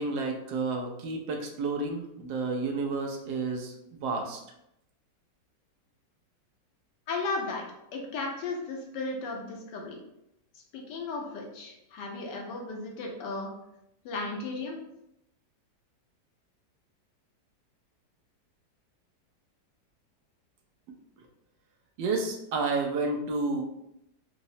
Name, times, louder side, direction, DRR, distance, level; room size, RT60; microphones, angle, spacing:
voice 1, 0.0-3.7 4.0-4.4 22.0-23.6, right 3 dB, 90° right, 2 dB, 1.3 m, -30 dB
voice 2, 7.1-7.6 7.9-10.0 10.7-13.5 14.0-14.8, left 3 dB, 80° left, 0 dB, 1.3 m, -35 dB
3.8 x 2.0 x 2.6 m, 0.81 s
omnidirectional pair, 1.9 m